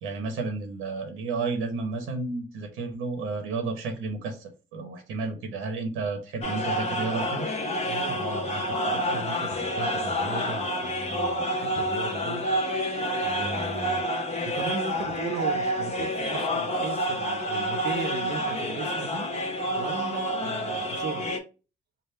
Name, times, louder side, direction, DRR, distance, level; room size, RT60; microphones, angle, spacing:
voice 1, 0.0-7.5, right 3 dB, 90° right, 0.9 m, -32 dB
sound 1, 6.4-21.4, equal, 35° left, 0.9 m, -28 dB
voice 2, 7.9-12.5 13.2-14.1 14.4-19.3 19.7-21.3, right 5 dB, 60° right, 0.6 m, -37 dB
3.5 x 2.1 x 4.2 m
cardioid pair, 90°, 20 cm